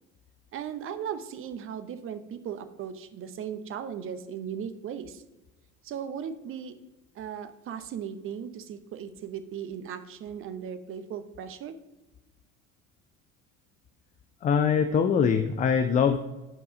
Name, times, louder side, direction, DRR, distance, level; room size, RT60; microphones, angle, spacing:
voice 1, 0.5-5.2 5.8-6.8 7.1-11.8, right 8 dB, 30° right, 11 dB, 0.8 m, -37 dB
voice 2, 14.4-16.2, left 6 dB, 20° left, 8 dB, 0.4 m, -23 dB
9.8 x 4.8 x 5.0 m, 1.1 s
figure-of-eight pair, 65°, 41 cm